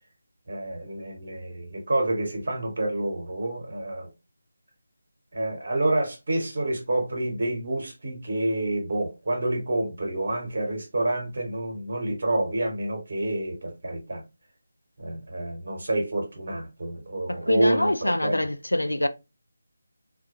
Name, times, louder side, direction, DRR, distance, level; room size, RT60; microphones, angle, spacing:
voice 1, 0.5-4.1 5.3-14.2 15.0-18.5, right 1 dB, 50° right, 0.9 m, -28 dB
voice 2, 17.3-19.1, left 1 dB, 75° left, 0.3 m, -24 dB
2.3 x 2.1 x 2.7 m
figure-of-eight pair, 155°, 0 cm